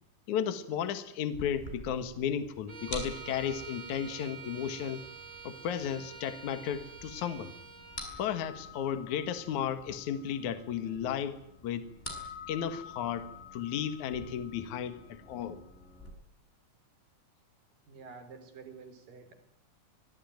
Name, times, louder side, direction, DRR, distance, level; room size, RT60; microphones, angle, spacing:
voice 1, 0.3-5.0 5.4-7.5 8.2-11.8 12.5-13.3 13.5-15.6, left 9 dB, 65° left, 11 dB, 2.7 m, -34 dB
sound 1, 1.3-16.1, left 2 dB, 15° left, 7.3 m, -47 dB
Bowed string instrument, 2.7-8.1, right 6 dB, 35° right, 6.1 m, -47 dB
voice 2, 17.9-19.3, right 5 dB, 75° right, 9 dB, 5.5 m, -49 dB
25.5 x 19.0 x 9.3 m, 0.74 s
omnidirectional pair, 4.0 m